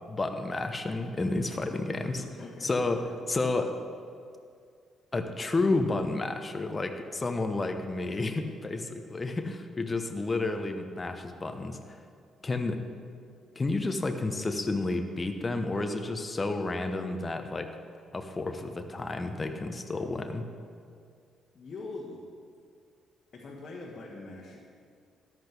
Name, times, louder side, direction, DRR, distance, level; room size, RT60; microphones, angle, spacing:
voice 1, 0.0-2.2 2.6-3.8 5.1-12.0 12.4-12.8 13.5-17.7 18.1-20.5, left 2 dB, 30° left, 6 dB, 1.0 m, -31 dB
voice 2, 1.9-2.7 21.5-22.2 23.3-24.6, left 3 dB, 45° left, -3 dB, 1.5 m, -42 dB
13.5 x 11.0 x 3.5 m, 2.3 s
figure-of-eight pair, 45°, 0 cm